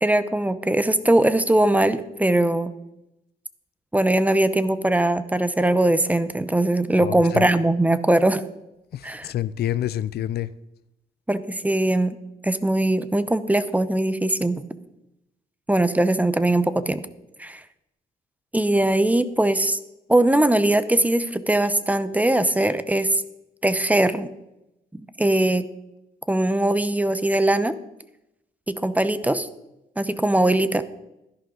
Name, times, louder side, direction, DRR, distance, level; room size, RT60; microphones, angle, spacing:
voice 1, 0.0-2.7 3.9-8.4 9.0-9.3 11.3-12.2 12.4-14.6 15.7-17.0 17.4-17.6 18.5-19.8 20.1-23.2 23.6-24.3 24.9-25.6 26.3-27.7 28.7-29.5 30.0-30.8, right 1 dB, 10° right, 0.8 m, -21 dB
voice 2, 7.0-7.5 8.9-10.5, left 12 dB, 65° left, 0.5 m, -28 dB
13.5 x 11.0 x 3.9 m
cardioid pair, 85°, 17 cm